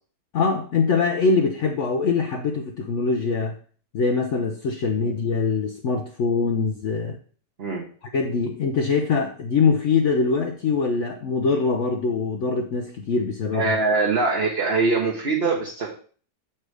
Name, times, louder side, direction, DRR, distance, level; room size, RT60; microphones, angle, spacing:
voice 1, 0.3-3.6 3.9-7.2 8.1-13.7, left 4 dB, 60° left, 3 dB, 0.8 m, -23 dB
voice 2, 13.5-15.9, right 3 dB, 40° right, -2 dB, 1.2 m, -23 dB
6.4 x 4.3 x 4.8 m, 0.42 s
omnidirectional pair, 1.7 m